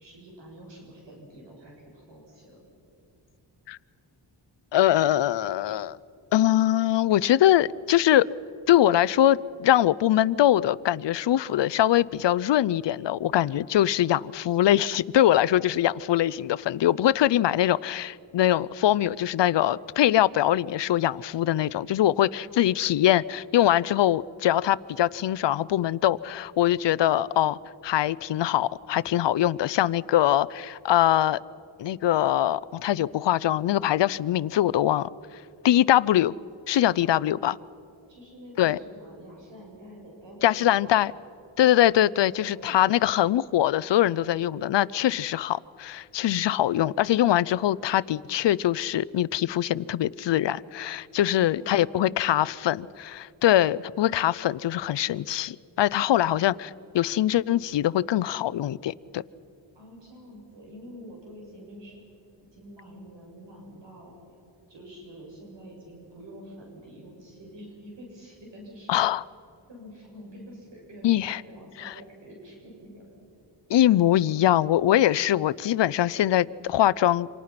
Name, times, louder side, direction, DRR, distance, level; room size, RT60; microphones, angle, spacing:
voice 1, 0.0-2.6 15.4-15.5 22.2-22.7 37.0-37.3 38.1-40.9 42.4-42.9 51.2-51.9 56.1-56.4 59.7-62.0 62.4-64.1 64.7-68.9 69.7-73.2, equal, 70° right, 7.4 m, -47 dB
voice 2, 4.7-6.0 6.3-8.3 8.7-31.4 31.8-35.1 35.6-36.3 36.7-37.6 38.6-38.8 40.4-41.1 41.6-56.7 56.9-59.2 68.9-69.2 71.0-71.4 71.8-71.9 73.7-77.3, left 12 dB, 65° left, 0.7 m, -23 dB
28.5 x 26.0 x 5.9 m
wide cardioid pair, 105°, 45 cm